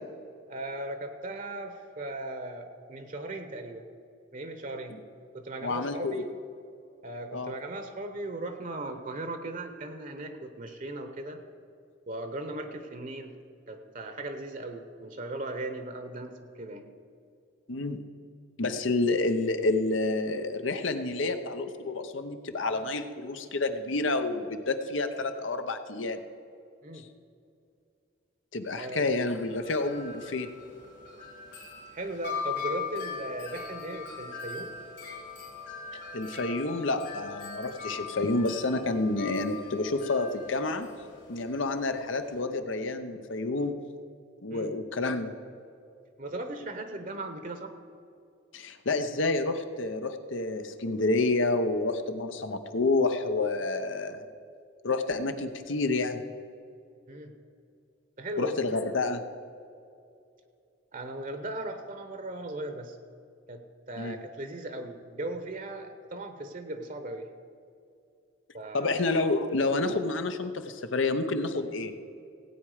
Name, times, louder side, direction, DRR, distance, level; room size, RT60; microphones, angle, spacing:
voice 1, 0.5-3.9 4.3-5.0 5.3-6.3 7.0-11.4 12.1-13.3 13.7-16.9 26.8-27.0 28.8-29.1 31.9-34.7 44.5-44.7 46.2-47.7 57.1-57.3 58.2-58.6 60.9-63.0 63.5-67.3 68.5-69.0, right 2 dB, 45° right, 7 dB, 0.9 m, -38 dB
voice 2, 5.6-6.3 7.3-7.5 17.7-18.0 18.6-26.2 28.5-30.5 36.1-40.9 41.3-43.8 44.4-45.3 48.5-54.2 54.8-56.2 58.4-59.2 64.0-64.2 68.7-71.9, left 3 dB, 80° left, 8 dB, 0.9 m, -29 dB
Wind chime, 29.1-42.4, left 5 dB, 60° left, 3.0 m, -41 dB
17.0 x 8.6 x 4.9 m, 2.5 s
head